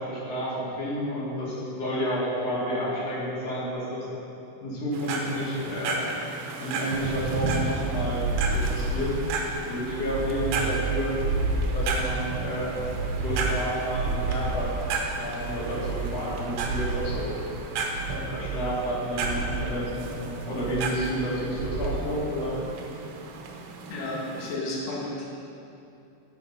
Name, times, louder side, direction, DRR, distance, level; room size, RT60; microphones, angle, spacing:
voice 1, 0.0-4.1 4.6-6.0 6.6-9.2 9.7-11.2 11.7-12.8 13.2-14.7 15.2-17.3 18.1-22.5, equal, 40° left, -8 dB, 3.0 m, -30 dB
sound 1, 4.9-24.5, right 3 dB, 75° right, 2.7 m, -34 dB
sound 2, 6.9-9.4 9.8-12.3 12.8-14.9 15.4-17.3 17.9-18.9 19.2-19.7 20.5-21.3 21.6-22.0, right 3 dB, 50° right, 1.5 m, -30 dB
voice 2, 23.9-25.3, left 2 dB, 85° left, -4 dB, 1.4 m, -32 dB
9.7 x 7.0 x 5.7 m, 2.7 s
omnidirectional pair, 5.1 m